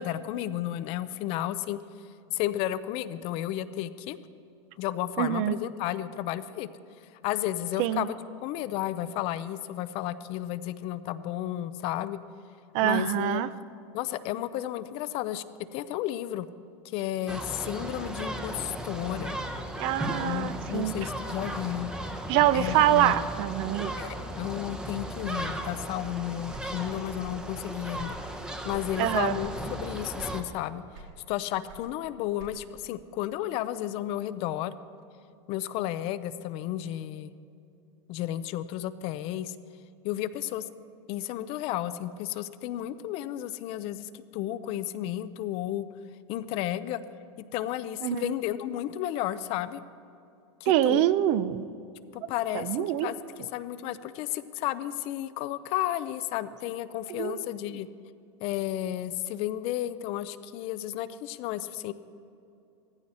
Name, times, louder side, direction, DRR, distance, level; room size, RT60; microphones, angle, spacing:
voice 1, 0.0-1.8 2.3-4.2 4.8-6.7 7.2-8.1 8.4-12.2 12.8-13.4 13.9-15.4 15.7-16.5 16.9-19.3 20.2-21.9 22.5-23.1 23.9-28.2 28.6-30.8 31.3-34.8 35.5-37.3 38.1-39.5 40.0-40.7 41.1-45.9 46.3-47.0 47.5-49.8 50.6-51.0 52.1-53.2 53.5-57.9 58.4-61.9, left 13 dB, 40° left, 14 dB, 0.5 m, -32 dB
voice 2, 5.2-5.6 7.8-8.0 12.7-13.5 19.8-21.0 22.3-23.9 29.0-29.4 48.0-48.3 50.7-51.7 52.5-53.1 57.1-57.5, right 12 dB, 45° right, 15 dB, 0.5 m, -25 dB
sound 1, 17.3-30.4, right 1 dB, 5° right, 0.8 m, -36 dB
sound 2, 26.5-27.5 27.8-28.9 29.4-29.7 30.1-30.6 30.9-32.8, right 4 dB, 65° right, 3.3 m, -47 dB
17.5 x 15.0 x 4.3 m, 2.7 s
supercardioid pair, 155°, 15 cm